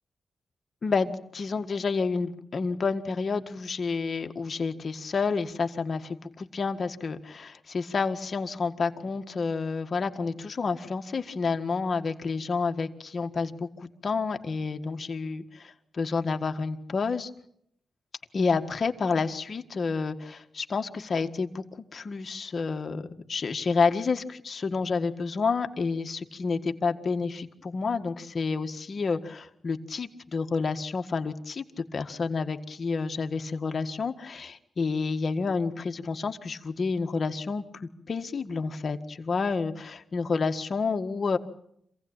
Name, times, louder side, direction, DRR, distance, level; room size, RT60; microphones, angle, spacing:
voice 1, 0.8-17.3 18.3-21.6 21.9-41.4, left 4 dB, 50° left, 7 dB, 1.7 m, -29 dB
26.5 x 17.0 x 9.0 m, 0.73 s
cardioid pair, 100°, 0 cm